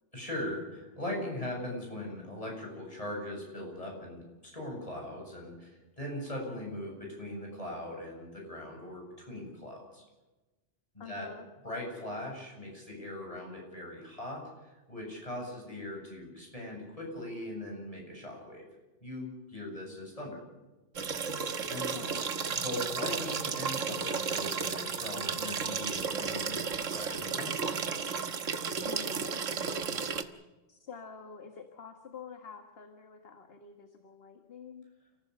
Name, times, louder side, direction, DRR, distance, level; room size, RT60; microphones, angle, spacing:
voice 1, 0.1-10.0 10.9-11.3 11.6-14.4 14.7-18.6 19.0-20.4 21.7-21.9 22.5-27.8, left 1 dB, 30° left, -1 dB, 8.0 m, -40 dB
voice 2, 11.0-11.5 21.7-22.2 28.8-29.9 30.7-34.9, left 5 dB, 50° left, 6 dB, 1.8 m, -48 dB
sound 1, 21.0-30.2, right 5 dB, 80° right, 1.6 m, -33 dB
30.0 x 15.5 x 6.8 m, 1.1 s
omnidirectional pair, 1.3 m